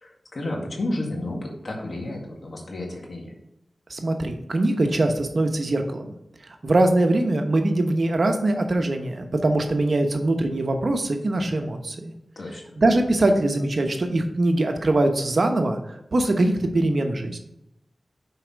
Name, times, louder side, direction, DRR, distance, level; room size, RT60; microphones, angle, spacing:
voice 1, 0.0-3.3 12.4-12.6, left 1 dB, 65° left, 0 dB, 1.9 m, -31 dB
voice 2, 3.9-6.1 6.6-12.1 12.8-15.8 16.1-17.4, right 2 dB, 65° right, 5 dB, 1.0 m, -22 dB
5.8 x 4.9 x 6.1 m, 0.81 s
cardioid pair, 45°, 0 cm